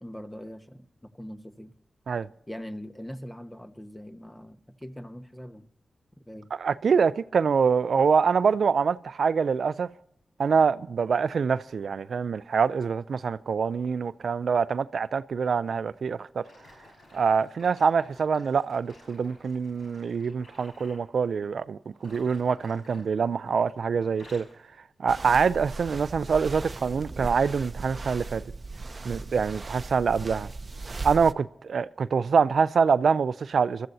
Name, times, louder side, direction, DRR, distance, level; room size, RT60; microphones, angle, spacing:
voice 1, 0.0-1.7 2.5-5.7 6.3-6.5, equal, 15° left, 1.3 m, -42 dB
voice 2, 6.6-9.9 10.4-16.4 17.1-24.4 25.0-28.4 29.0-30.5 31.0-33.9, right 6 dB, 80° right, 0.4 m, -25 dB
sound 1, 16.4-21.1 21.9-23.7 24.0-24.6 25.3-25.5 26.1-26.2, left 1 dB, 80° left, 5.5 m, -54 dB
sound 2, 25.1-31.3, right 3 dB, 45° right, 0.7 m, -37 dB
24.5 x 13.5 x 2.7 m
cardioid pair, 50°, 0 cm